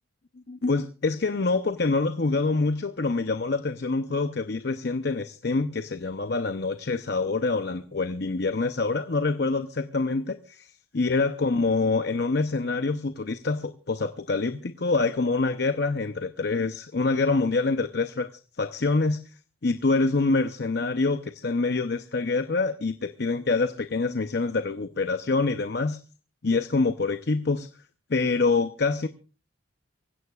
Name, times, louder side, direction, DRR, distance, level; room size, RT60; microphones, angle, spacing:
voice 1, 0.5-18.3 18.6-19.2 19.6-26.0 26.4-27.7 28.1-29.1, left 3 dB, 55° left, 0.7 m, -26 dB
24.5 x 16.0 x 2.4 m
head